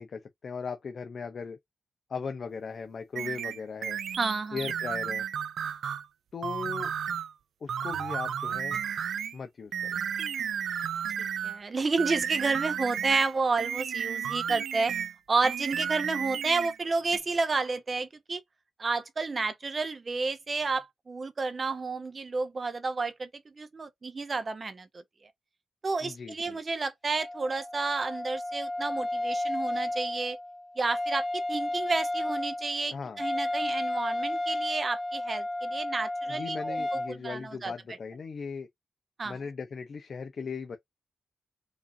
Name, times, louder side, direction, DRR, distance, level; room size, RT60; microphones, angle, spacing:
voice 1, 0.0-1.6 2.1-4.0 4.5-5.3 6.3-6.9 7.6-8.8 9.3-9.9 26.0-26.6 32.9-33.2 36.3-38.7 39.2-40.8, left 5 dB, 55° left, 0.6 m, -38 dB
sound 1, 3.2-6.1 6.4-7.3 7.7-9.4 9.7-11.6 12.0-15.2 15.4-16.8 17.1-17.2, right 8 dB, 90° right, 0.3 m, -33 dB
voice 2, 4.2-4.6 11.4-14.9 15.3-18.4 18.8-23.3 23.6-24.9 25.8-30.4 30.8-37.7 39.2-39.4, right 3 dB, 35° right, 0.6 m, -30 dB
Wind instrument woodwind instrument, 27.1-37.1, left 1 dB, 25° left, 1.1 m, -32 dB
4.9 x 2.6 x 2.5 m
wide cardioid pair, 115°, 0 cm